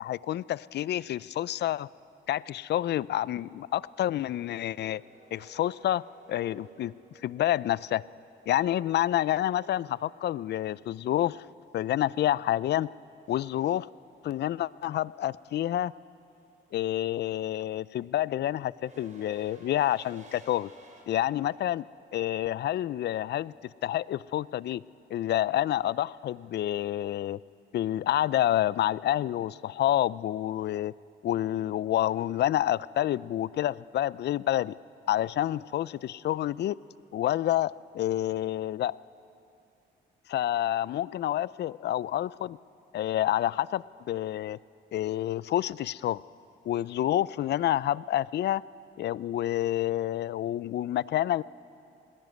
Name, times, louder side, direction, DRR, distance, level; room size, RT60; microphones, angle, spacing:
voice 1, 0.0-1.9 2.3-5.0 5.3-6.0 6.3-6.9 7.2-8.0 8.5-11.4 11.7-12.9 13.3-13.9 14.2-15.9 16.7-20.7 21.1-21.8 22.1-23.5 23.8-24.8 25.1-27.4 27.7-30.9 31.2-34.7 35.1-36.8 37.1-38.9 40.3-42.6 42.9-44.6 44.9-46.2 46.7-48.6 49.0-51.4, left 12 dB, 60° left, 21 dB, 0.4 m, -28 dB
sound 1, 4.8-8.8 11.3-11.4 12.7-13.0 13.2-21.0, right 3 dB, 40° right, 6.0 m, -55 dB
20.5 x 18.5 x 9.3 m, 2.7 s
cardioid pair, 90°, 20 cm